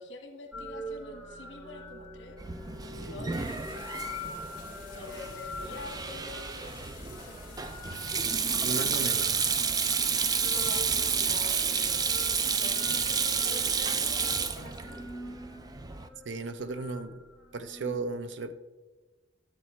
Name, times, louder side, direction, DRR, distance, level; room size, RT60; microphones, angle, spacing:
voice 1, 0.0-2.4 3.0-4.6 4.9-7.7 10.3-12.0 12.6-15.0, left 2 dB, 70° left, 4 dB, 1.5 m, -46 dB
sound 1, 0.5-18.0, left 1 dB, ahead, 1.2 m, -45 dB
Sink (filling or washing), 2.4-16.1, right 6 dB, 20° right, 0.3 m, -30 dB
sound 2, 3.4-12.5, left 6 dB, 50° left, 2.1 m, -52 dB
voice 2, 8.6-9.4 16.2-17.2 17.5-18.5, right 3 dB, 70° right, 11 dB, 0.6 m, -35 dB
11.0 x 7.6 x 3.2 m, 1.2 s
head